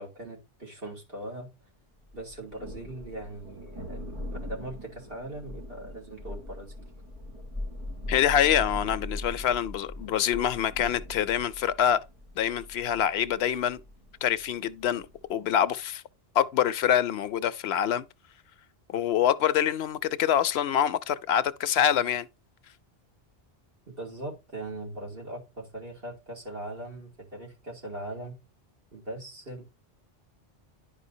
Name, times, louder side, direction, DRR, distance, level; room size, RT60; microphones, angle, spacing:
voice 1, 0.0-1.5 2.1-6.9 23.9-28.4 28.9-29.6, right 1 dB, 65° right, 2.7 m, -40 dB
Thunder, 2.1-15.3, left 1 dB, 30° right, 3.0 m, -41 dB
voice 2, 8.1-12.0 12.4-13.8 14.2-16.0 16.3-18.1 18.9-22.3, left 9 dB, 90° left, 0.9 m, -25 dB
10.5 x 5.0 x 2.7 m
omnidirectional pair, 1.0 m